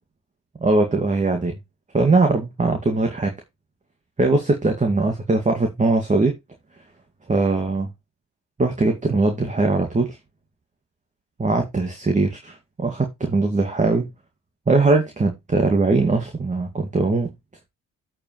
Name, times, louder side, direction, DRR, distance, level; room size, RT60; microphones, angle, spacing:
voice 1, 0.6-1.6 1.9-3.3 4.2-6.3 7.3-7.9 8.6-10.2 11.4-14.1 14.7-17.3, right 3 dB, 25° right, 2.2 m, -20 dB
8.4 x 7.8 x 3.2 m
cardioid pair, 90°, 30 cm